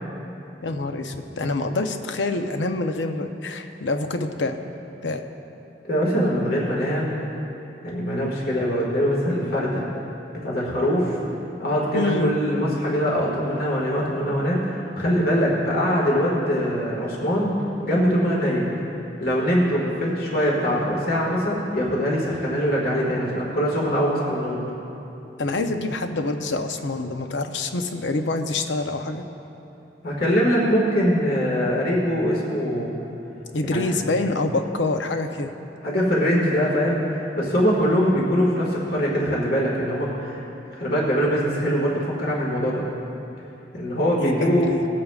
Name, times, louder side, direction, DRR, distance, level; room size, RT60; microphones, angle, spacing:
voice 1, 0.6-4.6 5.0-5.2 8.2-8.3 11.9-12.3 25.4-29.2 33.5-35.5 44.2-44.8, left 2 dB, 80° left, 6 dB, 0.7 m, -26 dB
voice 2, 5.8-7.1 7.8-9.8 10.4-11.2 11.6-17.6 17.8-18.7 19.2-24.6 30.0-32.9 33.6-34.0 35.8-40.4 40.8-42.8 43.7-44.7, equal, 55° left, -4 dB, 1.8 m, -22 dB
20.0 x 8.5 x 2.4 m, 2.9 s
head